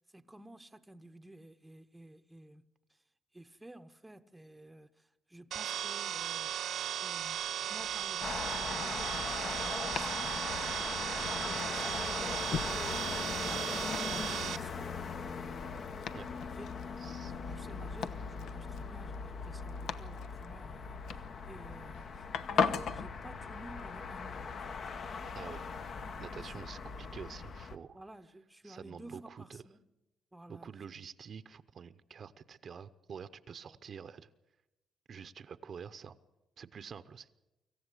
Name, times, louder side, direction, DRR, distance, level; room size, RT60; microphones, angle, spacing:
voice 1, 0.1-2.6 3.3-7.4 7.7-10.4 11.1-13.8 14.0-15.3 16.5-17.2 17.4-24.8 26.4-26.7 27.9-29.9 30.3-30.7 33.6-33.8, right 1 dB, 10° right, 0.9 m, -53 dB
sound 1, 5.5-14.6, right 10 dB, 80° right, 1.1 m, -36 dB
Domestic sounds home sounds, 7.5-23.1, left 6 dB, 80° left, 1.0 m, -41 dB
sound 2, 8.2-27.8, left 5 dB, 55° left, 1.2 m, -40 dB
voice 2, 17.0-17.3 25.3-25.6 26.2-28.0 28.6-29.6 30.5-34.3 35.1-36.2 36.6-37.3, right 7 dB, 50° right, 0.8 m, -47 dB
25.0 x 15.0 x 8.3 m
cardioid pair, 110°, 0 cm